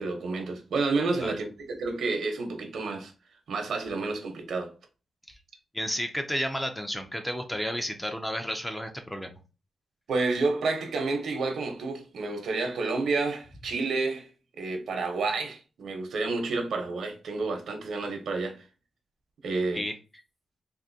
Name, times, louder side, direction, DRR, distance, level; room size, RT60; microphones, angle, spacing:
voice 1, 0.0-3.1 3.5-4.7 10.1-14.3 14.6-18.6 19.4-19.8, right 3 dB, 80° right, 0.8 m, -30 dB
voice 2, 5.7-9.4 19.7-19.9, equal, 5° left, 0.4 m, -32 dB
3.6 x 2.6 x 2.6 m
wide cardioid pair, 170°, 0 cm